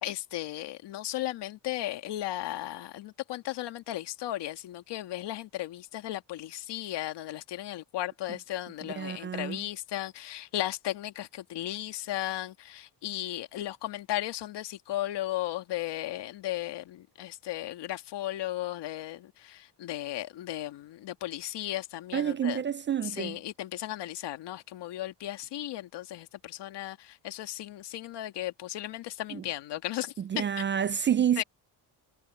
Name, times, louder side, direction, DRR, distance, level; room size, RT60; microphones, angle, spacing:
voice 1, 0.0-22.6 23.0-30.4 31.4-31.5, left 14 dB, 80° left, 2.1 m, -35 dB
voice 2, 8.8-9.6 22.1-23.4 29.3-29.4 30.2-31.4, right 9 dB, 30° right, 0.3 m, -29 dB
cardioid pair, 110°, 41 cm